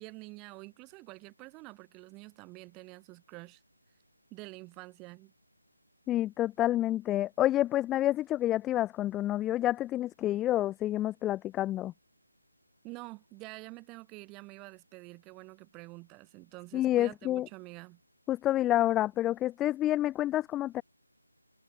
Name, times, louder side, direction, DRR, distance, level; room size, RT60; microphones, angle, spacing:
voice 1, 0.0-3.6 4.3-5.3 12.8-18.0, right 25 dB, 10° right, 7.4 m, -47 dB
voice 2, 6.1-11.9 16.7-17.5 18.3-20.8, left 14 dB, 10° left, 2.2 m, -28 dB
figure-of-eight pair, 160°, 0 cm